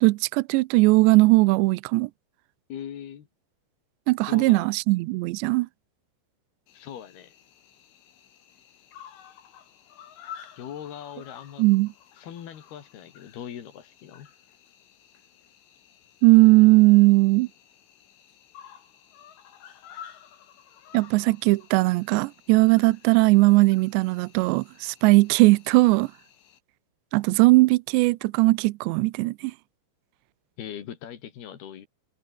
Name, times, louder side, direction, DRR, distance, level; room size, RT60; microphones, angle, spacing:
voice 1, 0.0-2.1 4.1-5.7 11.6-11.9 16.2-17.5 20.9-26.1 27.1-29.5, right 22 dB, 85° right, 2.6 m, -19 dB
voice 2, 2.7-3.3 4.3-4.7 6.7-7.3 10.6-11.7 12.2-14.3 30.6-31.9, left 9 dB, 60° left, 4.1 m, -40 dB
Cricket, 6.7-26.6, left 9 dB, 80° left, 5.5 m, -51 dB
omnidirectional pair, 5.5 m